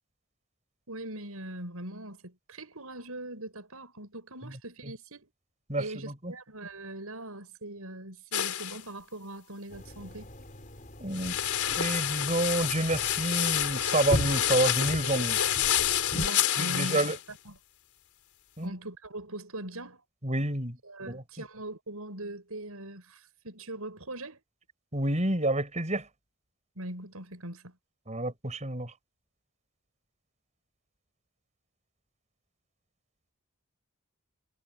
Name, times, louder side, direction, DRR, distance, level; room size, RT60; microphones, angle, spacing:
voice 1, 0.9-5.3 5.8-10.3 16.1-17.6 18.6-20.0 20.8-24.4 26.8-27.8, right 1 dB, 75° right, 7.0 m, -41 dB
voice 2, 5.7-6.3 11.0-11.4 11.8-15.4 16.6-17.2 18.6-18.7 20.2-20.8 21.1-21.2 24.9-26.0 28.1-28.9, right 1 dB, 30° right, 6.8 m, -29 dB
sound 1, 8.3-8.8 11.1-17.2, left 11 dB, 85° left, 4.2 m, -28 dB
sound 2, 9.7-16.3, equal, 35° left, 6.1 m, -38 dB
head